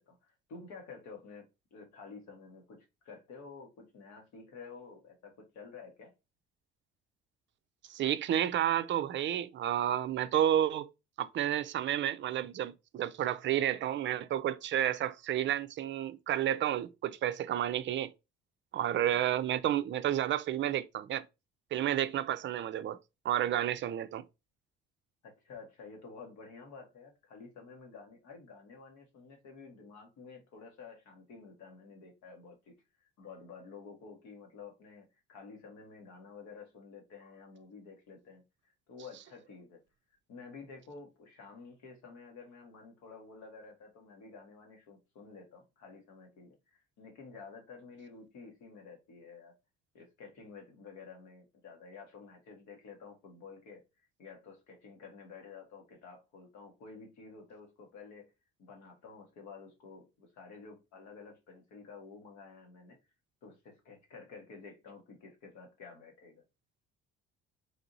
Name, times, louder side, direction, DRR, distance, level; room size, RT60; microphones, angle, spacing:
voice 1, 0.1-6.1 25.2-39.8 40.3-49.5 49.9-53.8 54.2-58.3 58.6-63.0 63.4-66.4, left 4 dB, 70° left, 1.3 m, -51 dB
voice 2, 7.9-10.9 11.2-18.1 18.7-21.2 21.7-23.0 23.2-24.2, right 11 dB, 40° right, 0.4 m, -31 dB
3.5 x 2.7 x 2.6 m
hypercardioid pair, 60°, 30 cm